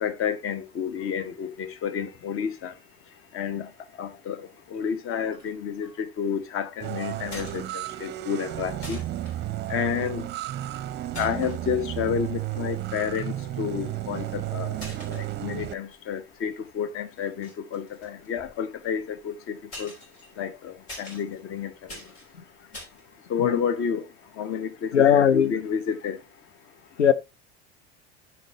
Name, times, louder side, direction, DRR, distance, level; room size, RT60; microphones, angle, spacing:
voice 1, 0.0-2.7 3.3-3.7 4.0-9.0 9.7-10.3 11.2-14.8 15.1-19.9 20.4-21.7 23.3-24.0 24.4-26.2, left 7 dB, 40° left, 1.0 m, -30 dB
sound 1, 5.3-5.6 5.8-6.2 7.3-8.1 8.3-8.4 8.8-9.3 10.4-10.7 11.1-11.6 12.2-12.3 13.6-14.1 14.7-16.0 16.3-16.7 17.2-19.2 19.7-23.0, left 1 dB, 65° left, 3.4 m, -44 dB
sound 2, 6.8-15.7, right 14 dB, 30° right, 0.6 m, -33 dB
voice 2, 24.9-25.6 27.0-27.1, left 8 dB, 85° left, 0.5 m, -19 dB
13.0 x 4.4 x 2.9 m
figure-of-eight pair, 70°, 33 cm